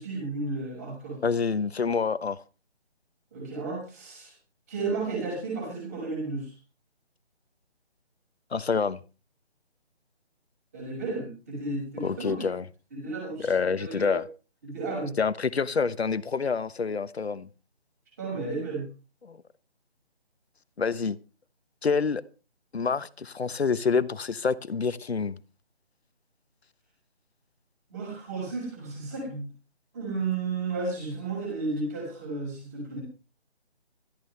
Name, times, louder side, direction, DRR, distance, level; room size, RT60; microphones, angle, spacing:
voice 1, 0.0-1.2 3.3-4.3 4.7-6.5 10.7-12.5 12.9-13.5 13.8-14.2 14.6-15.1 18.2-18.9 27.9-29.5 29.9-33.0, right 3 dB, 15° right, 6.2 m, -33 dB
voice 2, 1.2-2.4 8.5-9.0 12.0-12.7 13.4-14.2 15.2-17.5 19.2-19.4 20.8-21.2 21.8-22.2 22.7-25.4, left 5 dB, 70° left, 1.1 m, -27 dB
19.0 x 13.5 x 3.4 m
figure-of-eight pair, 175°, 33 cm